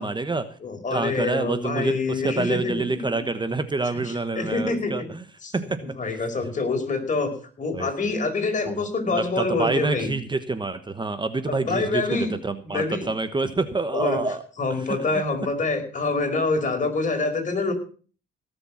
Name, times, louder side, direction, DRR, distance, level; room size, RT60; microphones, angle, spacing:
voice 1, 0.0-0.5 0.9-5.2 5.5-6.2 7.7-7.9 8.7-14.4 14.9-15.2, right 3 dB, 25° right, 11 dB, 1.2 m, -27 dB
voice 2, 0.6-3.0 4.0-5.1 5.4-10.1 11.5-12.3 12.6-13.1 13.9-14.2 14.6-17.7, left 3 dB, 40° left, 4 dB, 5.0 m, -26 dB
17.5 x 7.0 x 7.2 m, 0.40 s
cardioid pair, 90°, 20 cm